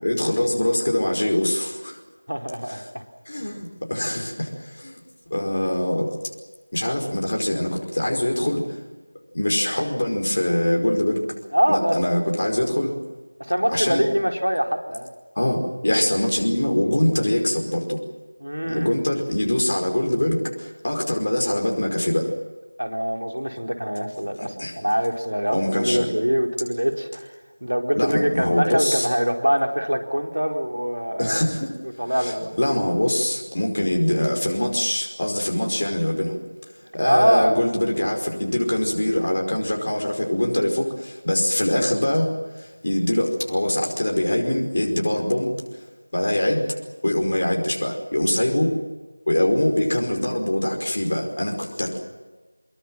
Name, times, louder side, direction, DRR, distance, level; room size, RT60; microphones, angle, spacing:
voice 1, 0.0-1.9 2.7-2.8 3.3-4.5 4.8-5.0 5.3-6.1 6.7-8.6 9.3-11.2 11.7-12.9 13.7-14.1 15.4-18.0 18.7-20.4 20.8-22.3 24.4-24.7 25.5-26.1 27.9-29.1 31.2-31.7 32.2-36.4 37.0-42.3 42.8-45.5 46.1-46.7 47.0-48.7 49.3-52.0, left 1 dB, 40° left, 1 dB, 5.1 m, -23 dB
voice 2, 2.3-3.0 11.5-12.3 13.4-15.1 18.4-18.9 22.8-27.3 27.6-31.4 32.0-32.5 37.0-37.6 48.4-48.5, equal, 85° right, 4 dB, 4.4 m, -23 dB
25.5 x 22.0 x 7.6 m, 1.3 s
figure-of-eight pair, 175°, 0 cm